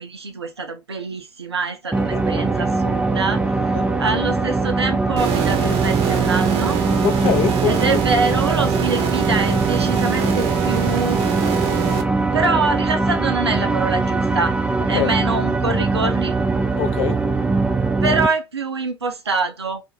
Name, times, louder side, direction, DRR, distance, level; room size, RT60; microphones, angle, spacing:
voice 1, 0.0-3.5 4.0-6.8 7.7-11.2 12.3-14.6 14.9-16.4 18.0-19.8, right 3 dB, 90° right, 0.4 m, -24 dB
sound 1, 1.9-18.3, right 3 dB, 10° right, 0.4 m, -21 dB
voice 2, 2.1-2.4 3.7-3.9 7.0-8.0 14.9-15.2 16.8-17.2, left 10 dB, 50° left, 0.5 m, -24 dB
sound 2, 5.2-12.0, right 11 dB, 45° right, 0.6 m, -25 dB
2.3 x 2.1 x 2.8 m
figure-of-eight pair, 75°, 13 cm